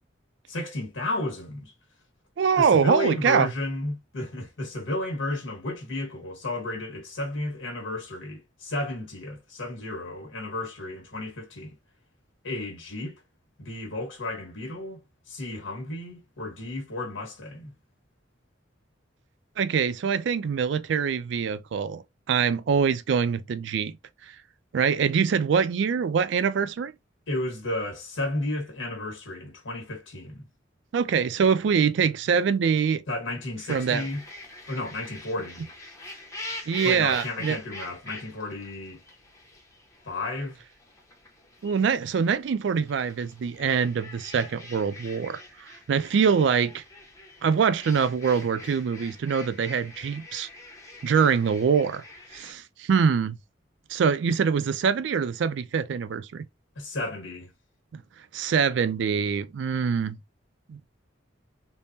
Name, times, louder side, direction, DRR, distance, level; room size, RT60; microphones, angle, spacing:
voice 1, 0.5-1.7 2.6-11.8 12.4-13.1 13.6-15.0 15.3-17.7 27.3-30.4 33.1-34.2 34.7-35.7 36.8-39.0 40.0-40.6 56.7-57.5, left 1 dB, 75° left, 1.3 m, -33 dB
voice 2, 2.4-3.5 19.6-23.9 24.7-26.9 30.9-33.0 33.7-34.1 36.7-37.6 41.6-45.4 45.9-46.8 47.4-50.5 51.0-52.0 52.3-53.4 53.9-56.5 57.9-58.0 58.3-60.2 60.7-60.8, right 6 dB, 65° right, 0.3 m, -24 dB
sound 1, 33.7-52.5, left 2 dB, 15° left, 0.8 m, -44 dB
3.5 x 2.0 x 2.7 m
head